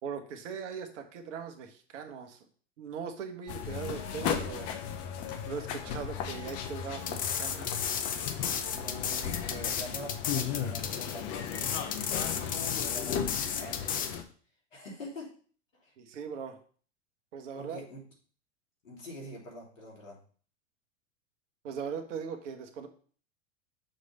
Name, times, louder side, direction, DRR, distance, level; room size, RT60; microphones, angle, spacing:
voice 1, 0.0-2.4 2.8-4.7 5.4-7.7 16.0-16.6 17.3-17.8 21.6-22.9, right 6 dB, 70° right, 6 dB, 1.3 m, -40 dB
sound 1, 3.5-14.2, left 8 dB, 40° left, 1.0 m, -36 dB
sound 2, 7.0-14.1, left 8 dB, 20° left, 0.6 m, -33 dB
voice 2, 8.7-12.3 12.7-14.0 14.7-15.3 15.8-15.9 17.6-18.0 18.8-20.2, left 1 dB, 90° left, -3 dB, 3.0 m, -45 dB
6.6 x 3.3 x 5.3 m, 0.43 s
hypercardioid pair, 105°, 38 cm